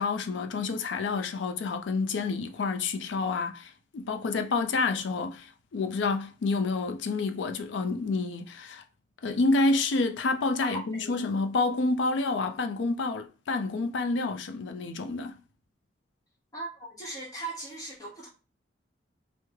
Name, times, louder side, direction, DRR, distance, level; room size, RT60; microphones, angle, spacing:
voice 1, 0.0-8.8 9.2-15.4, left 3 dB, 80° left, 0.4 m, -28 dB
voice 2, 10.6-11.3 16.5-18.3, right 2 dB, 20° left, 1.0 m, -39 dB
3.1 x 2.0 x 3.4 m
head